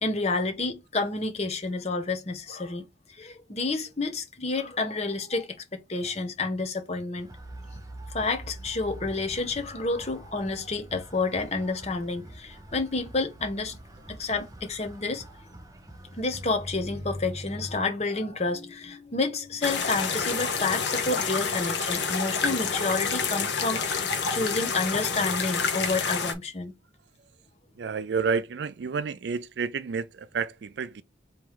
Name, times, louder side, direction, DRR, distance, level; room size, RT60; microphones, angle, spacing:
voice 1, 0.0-2.8 3.2-7.3 8.1-13.8 14.1-15.2 16.2-26.7, left 3 dB, 35° left, 0.9 m, -29 dB
sound 1, 7.2-17.8, equal, 20° right, 0.8 m, -43 dB
sound 2, 19.6-26.3, left 5 dB, 75° left, 1.0 m, -28 dB
voice 2, 27.8-31.0, right 5 dB, 70° right, 0.4 m, -30 dB
3.6 x 3.0 x 4.8 m
head